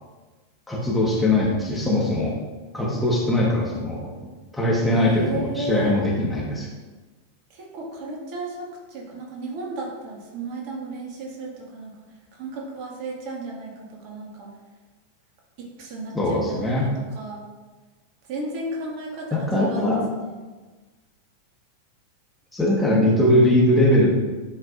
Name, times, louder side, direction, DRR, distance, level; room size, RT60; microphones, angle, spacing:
voice 1, 0.7-2.4 2.7-4.1 4.5-6.7 16.1-16.9 19.3-20.1 22.5-24.2, left 1 dB, 5° left, -4 dB, 1.5 m, -21 dB
voice 2, 4.9-5.9 7.5-11.9 12.3-14.5 15.6-17.4 18.3-20.5, right 2 dB, 45° right, -2 dB, 1.9 m, -34 dB
11.5 x 5.2 x 2.5 m, 1.3 s
figure-of-eight pair, 90°, 0 cm